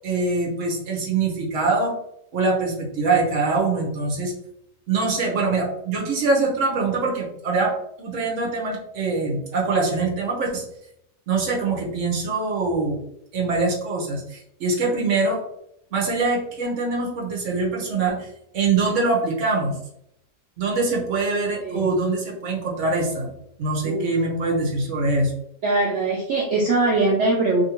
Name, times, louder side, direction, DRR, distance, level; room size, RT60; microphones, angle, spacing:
voice 1, 0.0-1.9 2.3-4.3 4.9-10.6 11.3-13.0 13.3-15.4 15.9-18.3 18.5-19.8 20.6-23.3 23.6-25.3, right 3 dB, 55° right, -1 dB, 1.0 m, -23 dB
voice 2, 23.8-24.2 25.6-27.6, right 2 dB, 75° right, -1 dB, 0.6 m, -21 dB
2.7 x 2.5 x 2.9 m, 0.76 s
omnidirectional pair, 1.7 m